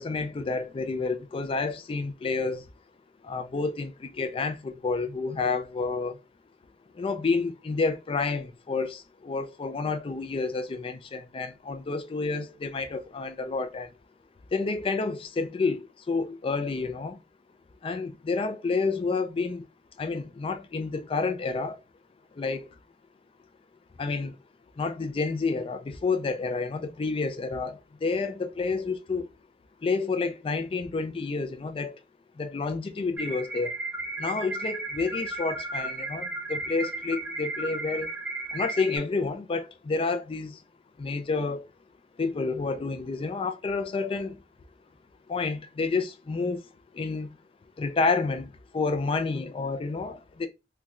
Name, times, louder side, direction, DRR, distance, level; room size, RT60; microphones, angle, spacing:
voice 1, 0.0-2.6 3.2-6.2 6.9-13.9 14.5-17.2 17.8-19.7 20.0-21.8 22.3-22.7 24.0-24.4 24.8-29.3 29.8-32.0 32.4-33.7 34.2-38.1 38.5-40.6 41.0-41.7 42.2-44.4 45.3-46.6 46.9-47.4 47.8-50.5, left 4 dB, 30° left, 0.3 m, -29 dB
sound 1, 33.2-39.0, right 2 dB, 10° right, 1.0 m, -34 dB
4.0 x 2.2 x 2.3 m
head